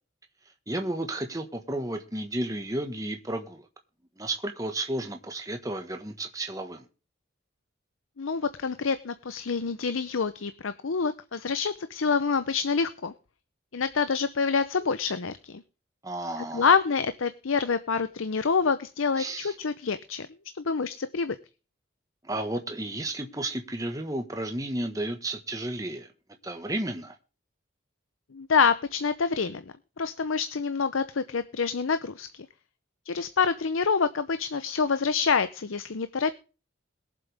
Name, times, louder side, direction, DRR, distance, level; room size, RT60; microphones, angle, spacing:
voice 1, 0.7-3.7 4.2-6.8 16.0-16.7 19.2-19.5 22.2-26.1 26.4-27.1, right 1 dB, 15° right, 1.4 m, -32 dB
voice 2, 8.2-13.1 13.7-15.6 16.5-20.3 20.5-21.4 28.3-29.6 30.0-32.5 33.1-36.3, left 5 dB, 90° left, 0.7 m, -27 dB
21.5 x 7.6 x 3.5 m
head